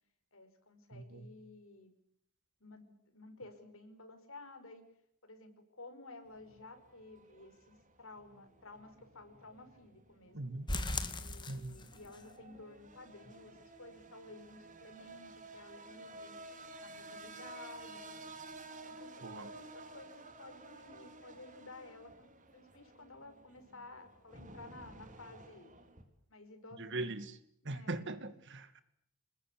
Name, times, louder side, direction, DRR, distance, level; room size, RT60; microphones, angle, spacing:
voice 1, 0.3-1.9 2.6-4.8 5.2-10.5 11.2-16.4 16.8-18.3 18.8-25.7 26.3-27.2 27.6-28.1, left 2 dB, 65° left, 5.4 m, -54 dB
voice 2, 0.9-1.3 10.3-10.7 11.5-11.7 19.2-19.5 26.8-27.3 27.7-28.8, right 2 dB, 55° right, 2.3 m, -40 dB
sound 1, 6.2-26.0, right 2 dB, 35° right, 3.7 m, -53 dB
sound 2, 10.7-12.2 12.5-12.6 13.0-13.1 13.5-13.6, left 2 dB, 20° left, 2.0 m, -38 dB
26.5 x 21.0 x 8.4 m
head